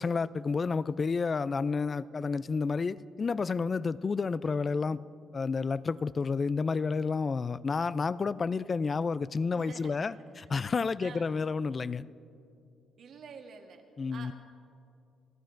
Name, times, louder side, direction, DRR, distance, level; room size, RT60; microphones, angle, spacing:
voice 1, 0.0-5.0 5.3-12.0 14.0-14.3, left 4 dB, 35° left, 17 dB, 0.3 m, -30 dB
voice 2, 9.5-10.3 11.0-11.3 13.0-13.8 14.1-14.3, right 5 dB, 65° right, 4 dB, 1.3 m, -48 dB
28.5 x 11.5 x 2.6 m, 2.5 s
cardioid pair, 90°, 0 cm